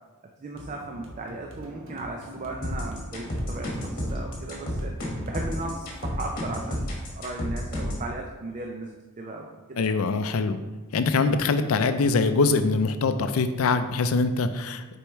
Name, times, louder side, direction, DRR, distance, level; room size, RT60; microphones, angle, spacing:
voice 1, 0.4-4.9 5.2-6.8 7.1-9.9, right 2 dB, 35° right, 1 dB, 0.4 m, -36 dB
sound 1, 0.5-7.5, equal, 60° right, 1.1 m, -44 dB
sound 2, 2.6-8.1, equal, 40° left, 1.5 m, -31 dB
voice 2, 9.8-10.6 10.9-15.0, left 4 dB, 70° left, 10 dB, 0.4 m, -23 dB
6.6 x 4.5 x 3.1 m, 1.2 s
head